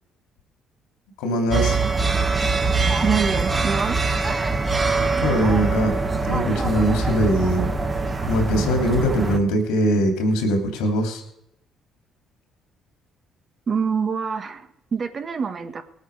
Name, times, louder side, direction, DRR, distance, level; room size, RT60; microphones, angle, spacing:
voice 1, 1.2-1.8 5.2-6.0 6.3-7.7 8.3-11.2, equal, 85° left, 3.2 m, -21 dB
sound 1, 1.5-9.4, right 3 dB, 30° right, 1.6 m, -23 dB
voice 2, 3.0-4.0 13.7-15.8, right 6 dB, 45° right, 1.5 m, -25 dB
19.5 x 8.2 x 4.9 m
hypercardioid pair, 60°, 0 cm